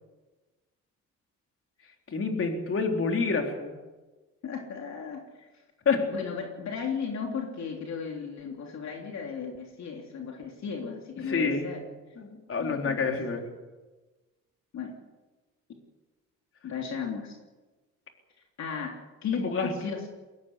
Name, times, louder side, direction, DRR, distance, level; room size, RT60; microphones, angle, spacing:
voice 1, 2.1-3.7 5.9-6.1 11.3-11.7 12.2-13.5 19.3-19.7, left 4 dB, 45° left, 3 dB, 3.9 m, -28 dB
voice 2, 4.4-5.5 6.1-11.8 12.6-13.1 14.7-14.9 16.6-17.4 18.6-19.0 19.2-20.1, left 6 dB, 65° left, 1 dB, 3.4 m, -35 dB
22.0 x 17.5 x 8.2 m, 1.2 s
cardioid pair, 90°, 30 cm